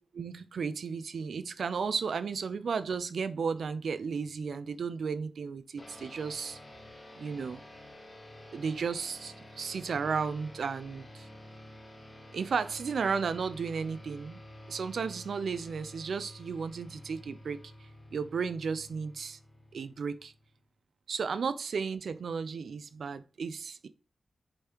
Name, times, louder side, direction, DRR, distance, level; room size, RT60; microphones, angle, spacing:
voice 1, 0.1-6.6 7.2-7.6 8.5-11.3 12.3-14.4 14.7-17.6 18.1-19.4 19.7-20.3 21.1-23.9, right 5 dB, 80° right, 0.6 m, -34 dB
sound 1, 5.8-20.6, left 1 dB, 30° left, 3.6 m, -50 dB
6.9 x 5.4 x 3.0 m
cardioid pair, 60°, 0 cm